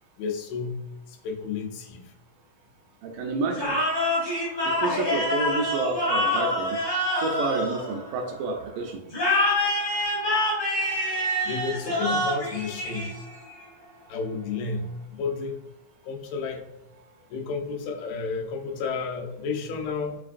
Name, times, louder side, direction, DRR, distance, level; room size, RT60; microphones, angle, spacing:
voice 1, 0.2-2.1 11.4-13.2 14.1-15.6 16.0-16.7 17.3-20.2, left 4 dB, 90° left, 2 dB, 2.5 m, -31 dB
voice 2, 3.0-4.0 4.6-6.8 7.2-9.0, right 3 dB, 80° right, 2 dB, 2.0 m, -29 dB
sound 1, 3.5-8.4 9.1-13.5, left 1 dB, 60° left, 0.7 m, -26 dB
5.7 x 3.2 x 2.4 m, 0.89 s
omnidirectional pair, 4.1 m